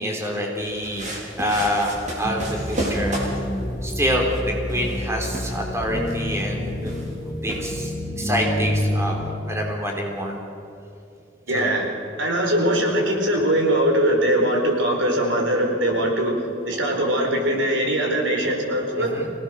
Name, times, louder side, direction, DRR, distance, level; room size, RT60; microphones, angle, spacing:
voice 1, 0.0-3.2 3.8-10.4 11.5-11.8 19.0-19.3, equal, 15° right, 0 dB, 3.7 m, -27 dB
sound 1, 0.6-8.1, right 1 dB, 40° right, 4.9 m, -33 dB
sound 2, 2.2-9.4, left 1 dB, 15° left, 3.6 m, -28 dB
voice 2, 11.5-19.1, right 1 dB, 90° right, 1 dB, 4.8 m, -21 dB
25.5 x 18.0 x 6.5 m, 2.7 s
head